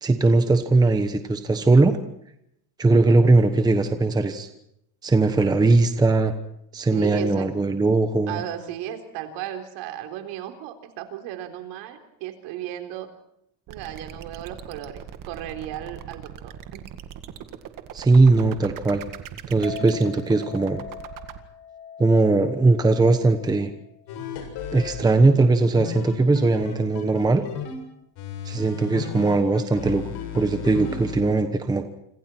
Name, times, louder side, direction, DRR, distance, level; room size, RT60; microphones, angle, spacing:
voice 1, 0.0-2.0 2.8-4.5 5.0-6.3 6.7-8.4 17.9-19.0 19.5-20.8 22.0-23.7 24.7-27.4 28.4-31.9, right 3 dB, 10° right, 8 dB, 1.0 m, -19 dB
voice 2, 6.7-7.7 8.3-13.1 13.7-16.9 25.0-25.1 25.7-25.9, right 11 dB, 60° right, 6 dB, 3.9 m, -35 dB
sound 1, 13.7-21.4, right 10 dB, 40° right, 1.9 m, -40 dB
Chink clink, 19.6-25.9, left 7 dB, 15° left, 4.0 m, -43 dB
sound 2, 24.1-25.0 25.8-27.8 28.2-31.2, left 7 dB, 55° left, 7.2 m, -34 dB
28.0 x 26.5 x 4.5 m, 0.77 s
cardioid pair, 160°, 49 cm